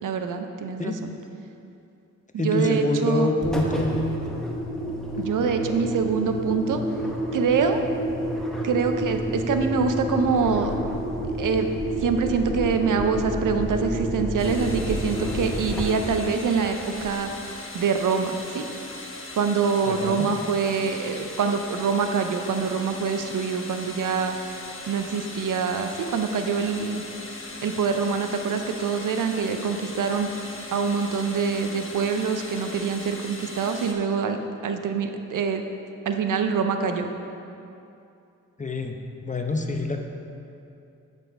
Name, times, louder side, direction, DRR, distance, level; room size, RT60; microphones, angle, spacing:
voice 1, 0.0-1.1 2.3-3.3 5.2-6.8 7.3-7.8 8.6-10.7 11.4-11.7 12.0-17.3 17.7-18.7 19.4-24.4 24.9-27.0 27.6-30.3 30.7-35.6 36.1-37.1, right 5 dB, 75° right, 6 dB, 0.6 m, -25 dB
voice 2, 2.4-3.9 19.9-20.3 38.6-40.0, left 2 dB, 25° left, 3 dB, 0.8 m, -26 dB
Engine, 3.4-17.4, right 1 dB, ahead, 1.1 m, -29 dB
sound 1, 14.4-33.9, left 2 dB, 40° left, 1.2 m, -39 dB
10.5 x 4.2 x 4.6 m, 2.7 s
cardioid pair, 50°, 32 cm